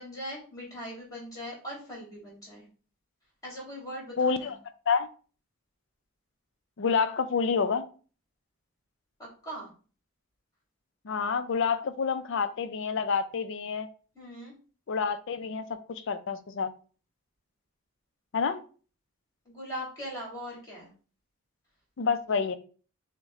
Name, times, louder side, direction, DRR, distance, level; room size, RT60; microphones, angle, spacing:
voice 1, 0.0-2.7 3.4-4.5 9.4-9.7 14.1-14.5 19.5-20.9, equal, 15° left, -4 dB, 2.3 m, -40 dB
voice 2, 4.2-4.6 4.9-5.1 6.8-7.8 11.0-13.9 14.9-16.7 18.3-18.6 22.0-22.5, left 5 dB, 60° left, 10 dB, 0.4 m, -28 dB
6.1 x 2.2 x 3.7 m, 0.38 s
head